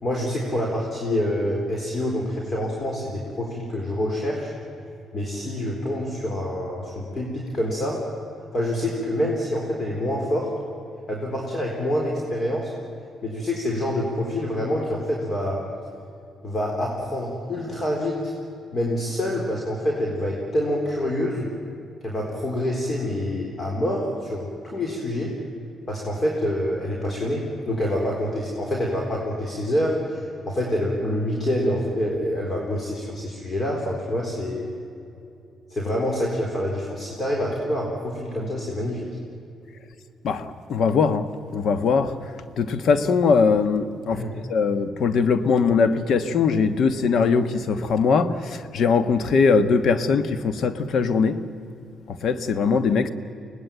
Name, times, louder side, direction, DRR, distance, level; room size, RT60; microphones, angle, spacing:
voice 1, 0.0-4.5 5.1-8.0 8.5-10.5 11.1-12.7 13.2-15.6 16.4-18.3 18.7-21.5 22.0-25.3 25.9-34.7 35.7-39.1 44.1-44.3, left 1 dB, 35° left, -1 dB, 4.1 m, -26 dB
voice 2, 40.2-42.3 42.6-51.4 52.1-53.1, left 5 dB, 65° left, 12 dB, 1.3 m, -21 dB
24.0 x 19.0 x 9.1 m, 2.7 s
cardioid pair, 90°, 0 cm